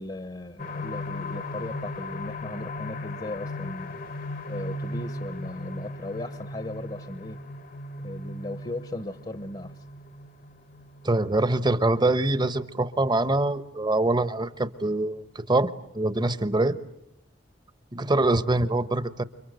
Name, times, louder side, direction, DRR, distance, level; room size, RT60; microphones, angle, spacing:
voice 1, 0.0-4.0 4.5-7.4 8.0-9.8, left 2 dB, 30° left, 12 dB, 1.1 m, -37 dB
sound 1, 0.6-14.1 14.5-14.6 15.0-15.1, left 2 dB, 55° left, 1.3 m, -37 dB
voice 2, 11.0-16.8 17.9-19.2, right 2 dB, 25° right, 13 dB, 1.0 m, -24 dB
29.5 x 24.5 x 8.0 m, 0.78 s
head